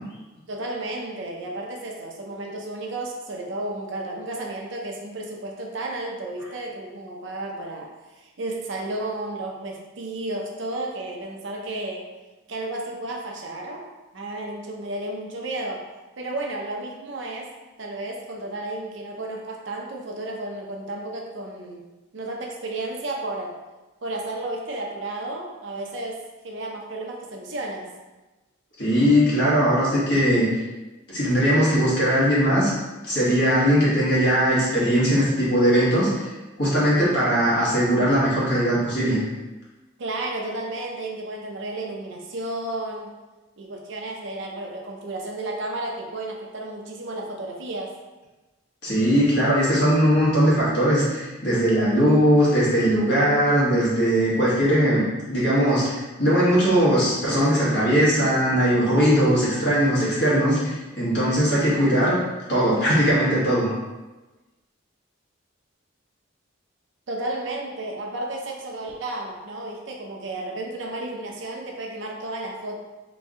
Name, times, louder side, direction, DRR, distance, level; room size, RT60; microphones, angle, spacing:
voice 1, 0.5-12.0 12.5-13.8 14.1-15.8 16.2-17.5 17.8-21.8 22.1-23.5 24.0-27.9 40.0-43.1 43.6-47.9 67.1-72.8, right 2 dB, 65° right, 0 dB, 0.6 m, -32 dB
voice 2, 28.8-30.5 31.1-32.7 33.0-36.3 36.6-39.2 48.8-62.2 62.5-63.7, equal, 55° left, -8 dB, 1.3 m, -20 dB
3.0 x 2.6 x 3.6 m, 1.2 s
head